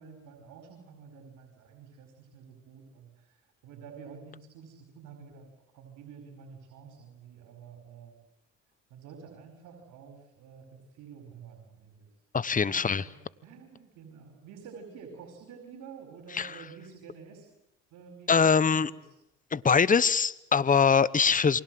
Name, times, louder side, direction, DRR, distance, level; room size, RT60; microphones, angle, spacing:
voice 1, 0.0-3.4 3.6-8.2 8.9-12.1 12.7-13.1 13.4-17.5 17.9-19.2, right 6 dB, 80° right, 4 dB, 5.1 m, -49 dB
voice 2, 12.3-13.0 16.3-16.6 18.3-18.9 19.5-21.6, left 6 dB, 25° left, 18 dB, 1.1 m, -23 dB
29.5 x 24.0 x 7.8 m, 0.85 s
supercardioid pair, 80°, 30 cm